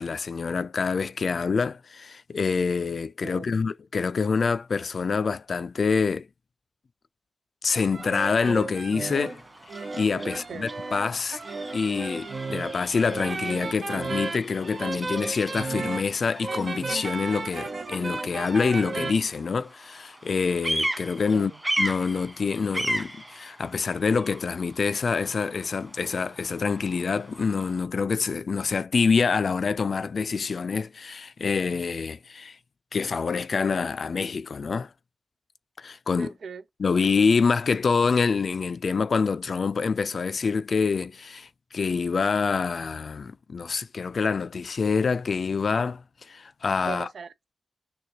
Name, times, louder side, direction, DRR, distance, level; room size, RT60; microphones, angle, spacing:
voice 1, 0.0-6.3 7.6-9.4 9.7-11.4 11.7-21.5 21.8-32.6 32.9-34.9 35.8-36.3 36.8-47.1, left 5 dB, 65° left, 0.3 m, -26 dB
sound 1, 7.7-19.1, right 3 dB, 60° right, 0.8 m, -34 dB
Bird vocalization bird call bird song, 9.1-27.8, right 1 dB, 10° right, 1.6 m, -37 dB
voice 2, 36.2-36.6 46.8-47.5, right 6 dB, 75° right, 0.5 m, -39 dB
6.5 x 2.3 x 2.7 m
cardioid pair, 70°, 0 cm